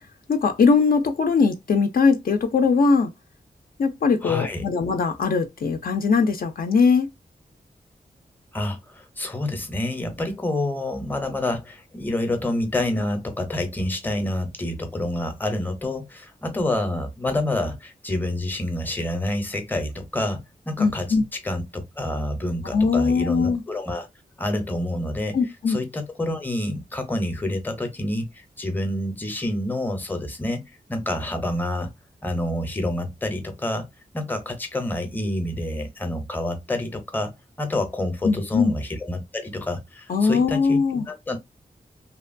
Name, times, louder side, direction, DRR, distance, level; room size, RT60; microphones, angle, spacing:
voice 1, 0.3-3.1 3.8-7.1 20.8-21.2 22.7-23.6 25.3-25.8 38.2-38.8 40.1-41.1, left 4 dB, 70° left, 0.5 m, -20 dB
voice 2, 4.2-4.6 8.5-21.2 21.4-24.1 24.4-25.4 25.7-30.6 30.9-31.9 32.2-33.9 34.1-37.3 37.6-40.8 41.1-41.4, left 1 dB, 10° left, 0.6 m, -28 dB
2.9 x 2.2 x 2.4 m
wide cardioid pair, 130°, 16 cm